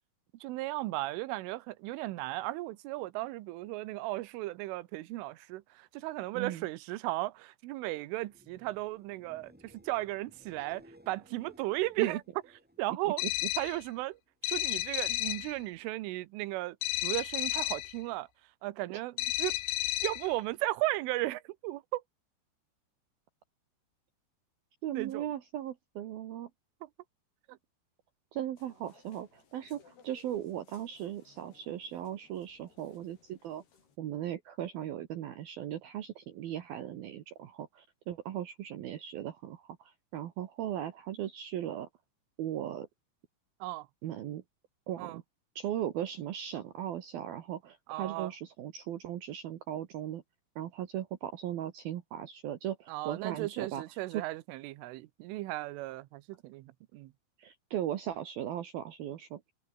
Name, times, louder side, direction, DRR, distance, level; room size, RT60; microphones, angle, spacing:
voice 1, 0.4-12.2 12.8-13.2 13.6-14.2 14.4-16.8 17.0-18.3 18.6-19.1 19.4-19.6 20.0-22.0 24.9-25.3 27.5-27.6 43.6-43.9 45.0-45.2 47.9-48.3 52.9-57.1, right 18 dB, 85° right, 3.6 m, -35 dB
voice 2, 6.3-6.6 10.6-10.7 12.0-12.2 13.0-13.1 24.8-26.5 28.3-33.6 34.0-41.9 42.4-42.9 44.0-44.4 44.9-45.2 45.6-50.2 50.6-53.8 54.1-54.2 57.4-59.4, right 11 dB, 65° right, 2.6 m, -38 dB
sound 1, 8.2-14.0 14.3-14.9 21.9-22.0, equal, 5° right, 1.6 m, -60 dB
sound 2, 13.2-13.8 14.4-15.5 16.8-17.9 19.2-20.3, left 18 dB, 85° left, 3.5 m, -32 dB
sound 3, 28.6-34.0, left 6 dB, 60° left, 6.3 m, -64 dB
omnidirectional pair, 5.6 m